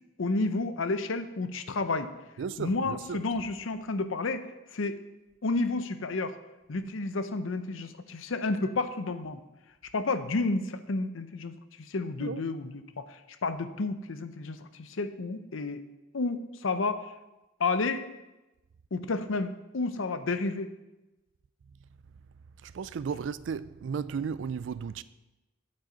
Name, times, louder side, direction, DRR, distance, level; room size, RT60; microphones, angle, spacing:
voice 1, 0.2-2.1 2.6-4.4 4.7-5.0 5.4-6.4 6.7-9.4 9.9-15.8 16.1-17.1 17.6-18.1 18.9-20.7, left 3 dB, 85° left, 0.6 m, -31 dB
voice 2, 2.4-3.2 12.2-12.4 22.6-25.0, right 6 dB, 70° right, 0.3 m, -34 dB
9.1 x 8.7 x 3.9 m
head